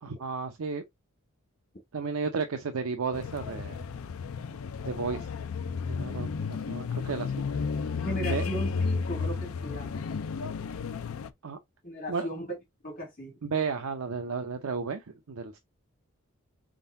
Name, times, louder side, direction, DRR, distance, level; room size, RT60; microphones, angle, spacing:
voice 1, 0.0-0.8 1.9-3.8 4.9-5.3 6.0-7.5 8.3-8.5 11.4-11.6 12.1-12.3 13.4-15.0 15.3-15.6, right 5 dB, 85° right, 0.6 m, -33 dB
sound 1, 3.1-11.3, left 5 dB, 75° left, 0.4 m, -33 dB
voice 2, 8.0-10.0 11.8-12.5 12.8-13.4, equal, 40° left, 2.5 m, -36 dB
4.7 x 3.8 x 2.5 m
head